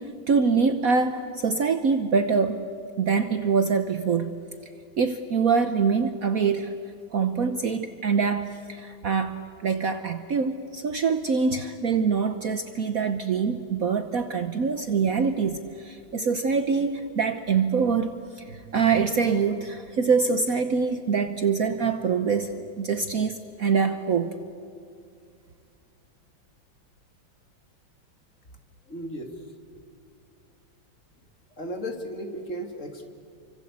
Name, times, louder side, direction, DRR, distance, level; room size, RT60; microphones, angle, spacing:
voice 1, 0.0-2.6 3.0-4.4 5.0-6.8 7.1-18.1 18.4-24.4, right 5 dB, 55° right, 9 dB, 1.2 m, -24 dB
voice 2, 28.9-29.3 31.6-33.1, equal, 40° left, 5 dB, 2.6 m, -35 dB
29.0 x 24.5 x 8.1 m, 2.4 s
omnidirectional pair, 2.2 m